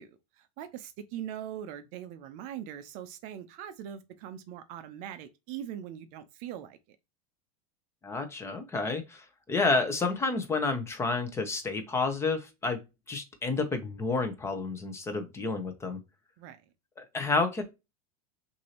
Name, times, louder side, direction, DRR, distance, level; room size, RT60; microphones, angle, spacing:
voice 1, 0.0-6.8 16.4-16.6, right 10 dB, 45° right, 0.5 m, -41 dB
voice 2, 8.0-12.8 13.1-16.0 17.0-17.6, left 3 dB, 15° left, 0.7 m, -30 dB
6.1 x 2.6 x 2.9 m
supercardioid pair, 150°, 19 cm